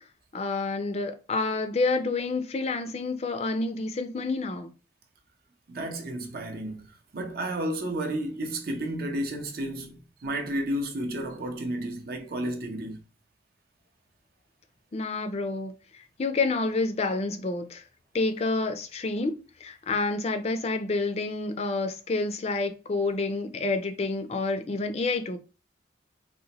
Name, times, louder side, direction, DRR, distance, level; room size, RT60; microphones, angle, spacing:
voice 1, 0.3-4.7 14.9-15.7 16.2-17.8 18.1-19.3 19.6-25.4, left 3 dB, 35° left, 0.4 m, -28 dB
voice 2, 5.7-13.0, right 1 dB, 55° right, 0.6 m, -32 dB
3.9 x 2.2 x 2.8 m
head